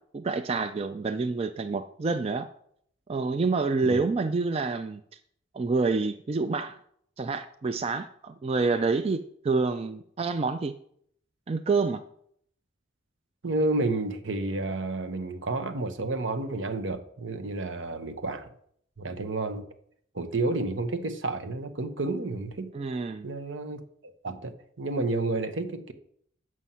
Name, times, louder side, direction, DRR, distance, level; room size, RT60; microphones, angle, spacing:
voice 1, 0.1-2.5 3.1-5.0 5.5-6.8 7.2-10.7 11.5-12.0 22.7-23.3, right 4 dB, 30° right, 0.3 m, -27 dB
voice 2, 13.4-18.5 19.0-19.6 20.1-22.7 23.2-25.9, right 2 dB, 75° right, 0.9 m, -30 dB
7.4 x 6.2 x 5.5 m
head